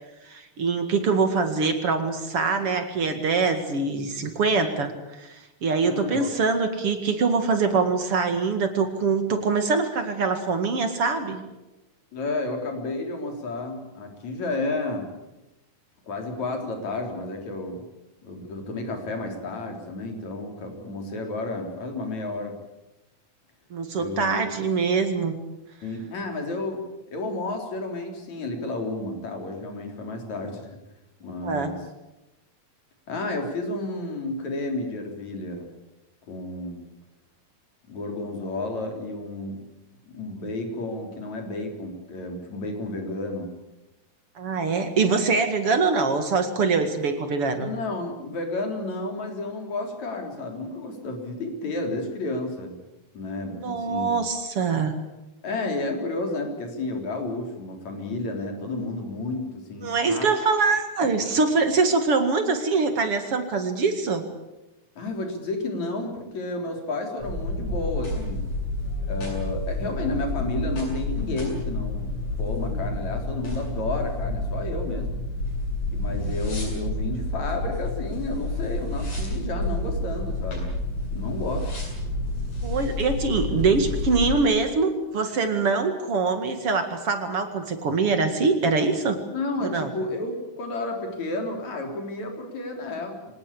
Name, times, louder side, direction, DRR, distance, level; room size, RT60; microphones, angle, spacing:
voice 1, 0.2-11.4 23.7-25.4 31.4-31.7 44.4-47.7 53.6-54.9 59.8-64.2 82.6-89.2 89.6-89.9, right 4 dB, 50° right, 8 dB, 2.8 m, -24 dB
voice 2, 5.8-6.3 12.1-15.1 16.0-17.9 18.2-22.6 23.9-24.4 25.8-26.8 27.1-30.8 31.2-31.8 33.1-35.7 36.3-36.8 37.9-39.6 40.1-43.5 47.6-52.7 53.1-54.2 55.4-60.3 65.0-68.4 69.1-72.1 72.4-75.2 75.9-80.7 81.1-81.7 89.3-93.2, left 2 dB, 65° left, 3 dB, 5.1 m, -31 dB
sound 1, 67.2-84.4, left 1 dB, 85° left, 9.4 m, -29 dB
25.0 x 19.0 x 8.5 m, 1.0 s
omnidirectional pair, 3.4 m